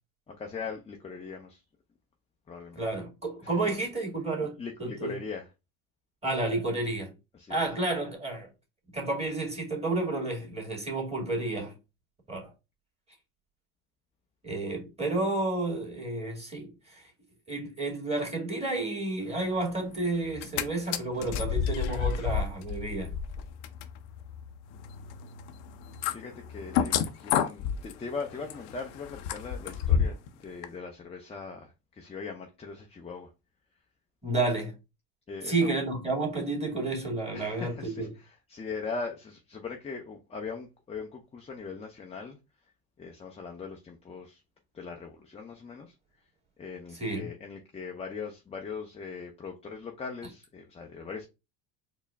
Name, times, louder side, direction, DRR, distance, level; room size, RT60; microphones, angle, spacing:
voice 1, 0.3-1.6 2.5-2.8 4.6-5.5 7.4-7.6 26.1-33.3 35.3-35.7 37.3-38.1 38.5-42.4 43.0-44.4 44.7-45.9 46.6-51.3, left 5 dB, 15° left, 0.5 m, -40 dB
voice 2, 2.8-5.2 6.2-7.1 7.5-8.5 8.9-11.7 12.3-12.5 14.4-17.1 17.5-23.1 34.2-34.7 35.4-38.1 46.9-47.3, right 2 dB, 15° right, 2.0 m, -31 dB
sound 1, 20.2-20.6 20.9-30.3 30.6-30.7, left 8 dB, 70° left, 0.7 m, -31 dB
4.4 x 2.0 x 3.4 m
hypercardioid pair, 90°, 47 cm